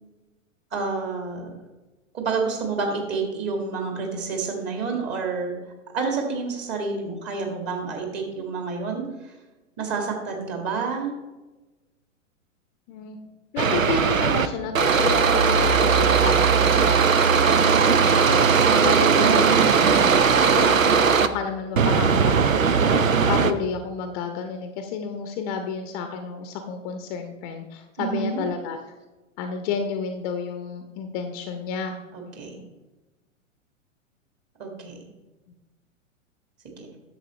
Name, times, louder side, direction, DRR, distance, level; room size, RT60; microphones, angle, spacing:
voice 1, 0.7-1.5 2.1-5.6 5.9-9.1 9.8-11.1 19.6-20.0 28.0-28.4 32.1-32.6 34.6-35.0 36.8-36.9, right 4 dB, 30° right, 2 dB, 1.9 m, -29 dB
voice 2, 13.5-17.1 17.5-18.4 18.8-20.1 20.5-20.8 21.1-28.8 29.4-32.0 32.6-32.7, left 5 dB, 30° left, 6 dB, 0.8 m, -31 dB
sound 1, 13.6-14.5 14.7-21.3 21.8-23.5, right 6 dB, 80° right, 0.6 m, -18 dB
10.5 x 7.2 x 3.1 m, 1.1 s
figure-of-eight pair, 100°, 39 cm